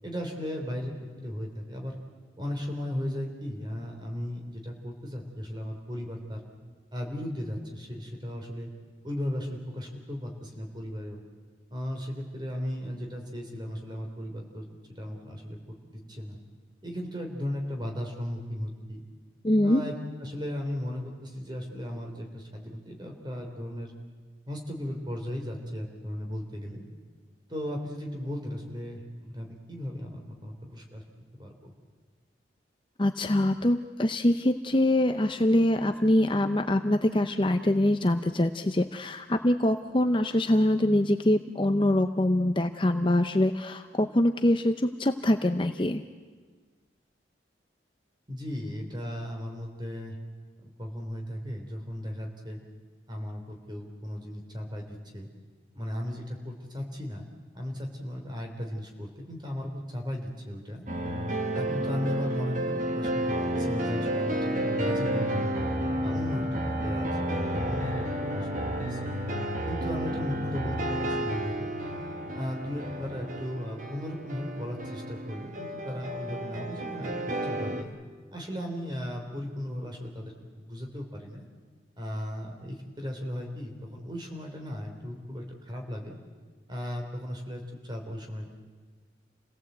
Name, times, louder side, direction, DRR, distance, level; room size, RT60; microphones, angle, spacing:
voice 1, 0.0-1.9 2.4-6.4 6.9-8.7 9.0-11.2 11.7-14.7 15.0-16.4 16.8-19.0 19.6-23.9 24.5-26.8 27.5-31.0 31.4-31.7 48.3-50.2 50.6-52.6 53.1-55.3 55.7-60.8 61.5-65.6 66.0-69.1 69.7-72.0 72.3-77.9 78.3-81.4 82.0-86.2 86.7-88.5, left 1 dB, 25° right, 2 dB, 3.5 m, -36 dB
voice 2, 19.4-19.8 33.0-46.0, left 1 dB, 25° left, 8 dB, 0.7 m, -24 dB
sound 1, 60.9-77.8, right 1 dB, 45° right, 1.9 m, -31 dB
28.5 x 17.5 x 8.1 m, 1.5 s
head